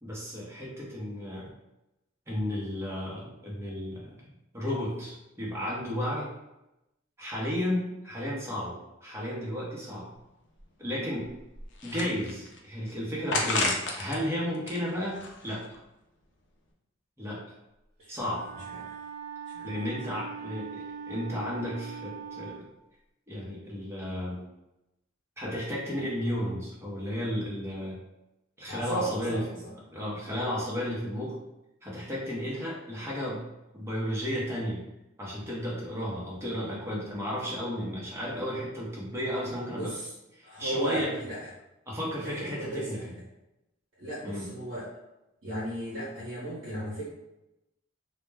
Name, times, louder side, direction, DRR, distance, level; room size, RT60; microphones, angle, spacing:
voice 1, 0.0-1.5 2.3-6.3 7.2-10.1 10.8-11.3 11.8-15.6 17.2-17.4 18.1-18.4 19.6-22.7 23.3-24.4 25.4-28.0 28.6-29.4 29.9-31.4 31.8-33.4 33.7-34.8 35.2-39.9 40.3-41.2 41.9-43.0 44.2-44.5, equal, 15° right, -4 dB, 0.7 m, -33 dB
sound 1, 10.2-10.3 10.6-10.7 11.3-12.6 13.3-14.2 14.5-15.8, left 3 dB, 60° left, 0.4 m, -31 dB
Wind instrument woodwind instrument, 18.2-22.7, right 6 dB, 50° right, 0.4 m, -41 dB
voice 2, 28.7-29.4 30.3-30.4 39.7-40.1 40.4-41.4 42.2-43.0 44.0-44.9 45.4-47.1, right 1 dB, 70° right, -8 dB, 0.8 m, -35 dB
2.1 x 2.0 x 3.2 m, 0.92 s
head